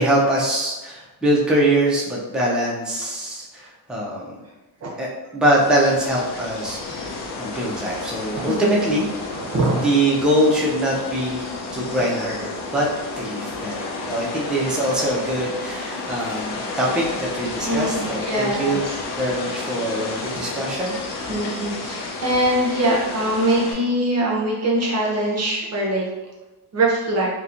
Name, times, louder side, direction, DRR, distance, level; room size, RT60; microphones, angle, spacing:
voice 1, 0.0-4.4 5.0-9.1 9.8-11.5 11.7-12.9 13.2-18.8 19.2-21.0, right 1 dB, ahead, -4 dB, 0.3 m, -23 dB
sound 1, 5.6-23.7, left 3 dB, 75° left, 0.6 m, -31 dB
voice 2, 9.5-9.9 17.6-19.0 20.3-20.5 21.3-26.0 26.7-27.3, right 1 dB, 40° right, -3 dB, 0.6 m, -22 dB
2.8 x 2.1 x 2.4 m, 1.1 s
cardioid pair, 125°, 40 cm